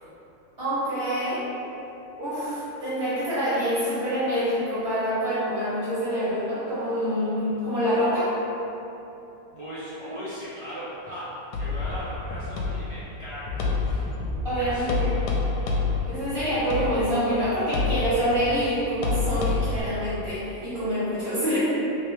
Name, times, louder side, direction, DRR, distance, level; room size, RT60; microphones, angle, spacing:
voice 1, 0.6-1.4 2.2-8.3 14.4-15.1 16.0-21.6, equal, 35° right, -13 dB, 1.7 m, -26 dB
voice 2, 9.5-14.0 14.5-15.2, equal, 55° right, -13 dB, 0.3 m, -38 dB
sound 1, 11.5-19.8, left 4 dB, 85° left, 1.2 m, -28 dB
3.2 x 3.0 x 3.2 m, 3.0 s
omnidirectional pair, 1.7 m